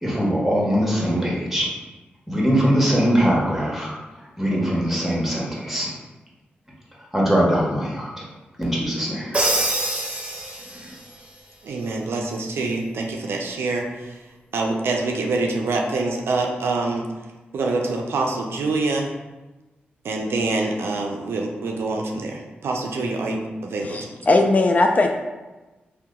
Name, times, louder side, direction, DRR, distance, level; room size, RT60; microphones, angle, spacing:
voice 1, 0.0-1.7 2.3-3.9 4.4-5.9 7.1-8.2 8.6-9.4, equal, 5° right, -4 dB, 1.2 m, -21 dB
Crash cymbal, 9.3-11.0, right 1 dB, 30° right, 0.7 m, -24 dB
voice 2, 11.6-14.2 14.5-17.1 17.5-19.1 20.0-24.0, right 3 dB, 80° right, 1 dB, 0.4 m, -25 dB
voice 3, 23.8-25.1, left 2 dB, 40° left, 3 dB, 0.3 m, -18 dB
2.8 x 2.2 x 3.5 m, 1.1 s
supercardioid pair, 45°, 4 cm